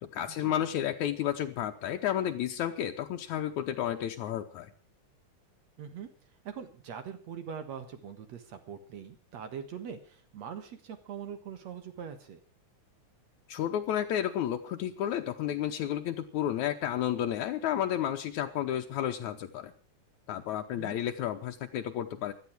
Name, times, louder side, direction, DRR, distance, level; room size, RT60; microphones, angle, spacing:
voice 1, 0.0-4.7 13.5-19.7 20.3-22.3, left 11 dB, 75° left, 4 dB, 2.3 m, -32 dB
voice 2, 5.8-6.1 6.4-12.4 20.7-21.0, right 7 dB, 65° right, 8 dB, 2.6 m, -42 dB
16.5 x 12.0 x 6.1 m, 0.37 s
omnidirectional pair, 3.4 m